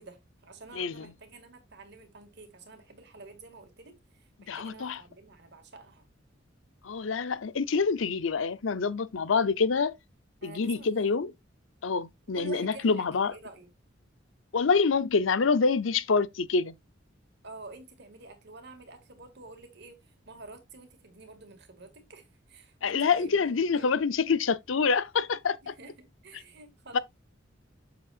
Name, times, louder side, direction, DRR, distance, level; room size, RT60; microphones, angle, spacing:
voice 1, 0.0-6.1 10.4-11.2 12.3-13.7 17.4-23.9 25.6-27.0, right 3 dB, 60° right, 1.9 m, -49 dB
voice 2, 0.7-1.1 4.5-5.0 6.8-9.9 10.4-11.3 11.8-13.3 14.5-16.7 22.8-25.7 26.9-27.0, left 5 dB, 90° left, 0.6 m, -26 dB
7.6 x 7.2 x 2.4 m
head